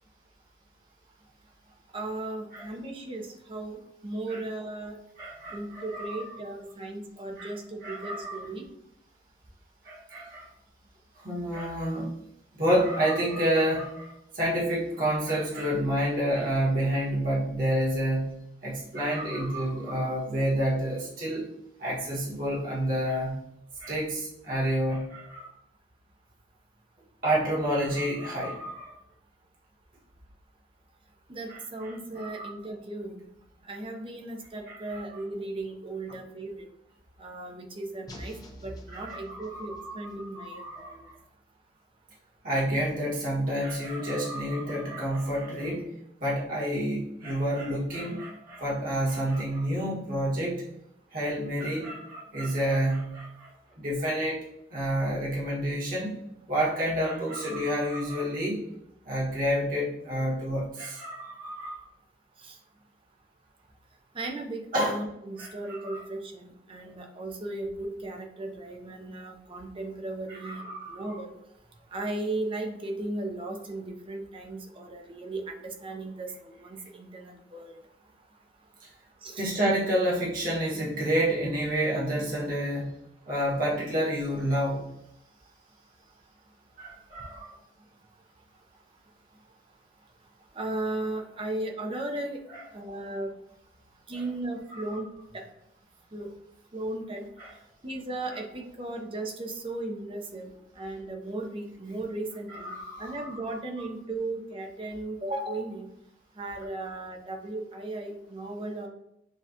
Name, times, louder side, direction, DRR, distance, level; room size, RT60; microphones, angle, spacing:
voice 1, 1.9-5.0 5.5-8.7 31.3-33.2 33.7-36.5 37.2-38.3 38.6-41.0 62.4-62.6 64.1-71.3 71.9-77.7 79.2-79.5 90.5-92.4 92.7-93.3 94.1-95.1 95.3-95.4 96.1-96.3 96.7-97.2 97.8-100.5 100.8-102.7 103.0-105.9 106.4-108.9, right 2 dB, 30° right, 3 dB, 0.7 m, -36 dB
voice 2, 5.2-6.2 7.4-7.5 7.8-8.4 9.8-10.5 11.2-12.1 12.6-21.5 21.8-23.4 23.8-25.5 27.2-28.9 31.5-32.5 34.7-35.0 38.9-41.1 42.4-45.9 46.2-50.6 51.1-53.5 53.8-54.4 54.7-56.2 56.5-58.6 59.0-61.8 64.7-65.0 65.4-66.0 70.3-71.2 79.4-82.9 83.3-84.9 86.8-87.5 92.5-92.6 94.1-94.2 94.7-94.8 97.4-97.5 102.5-103.4 103.8-103.9, right 1 dB, 50° right, -6 dB, 1.5 m, -29 dB
sound 1, 38.1-40.0, equal, 20° left, 0.7 m, -45 dB
7.1 x 2.4 x 2.8 m, 0.83 s
head